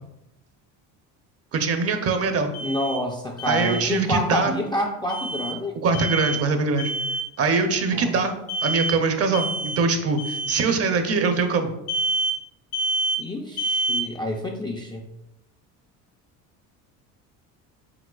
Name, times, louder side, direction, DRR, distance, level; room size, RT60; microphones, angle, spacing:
voice 1, 1.5-2.5 3.5-4.5 5.8-6.9 7.4-8.4 8.6-11.7, right 4 dB, 40° right, 6 dB, 0.6 m, -22 dB
Alarm, 2.5-3.0 3.4-3.8 5.1-5.5 5.9-6.4 6.8-7.3 8.5-9.0 9.3-9.8 10.2-10.6 11.9-12.4 12.7-13.2 13.6-14.0, right 2 dB, 80° left, 1.0 m, -27 dB
voice 2, 2.6-5.8 7.9-8.1 13.2-15.1, left 1 dB, 10° left, 0 dB, 0.4 m, -28 dB
4.8 x 3.7 x 2.3 m, 0.87 s
supercardioid pair, 85°, 38 cm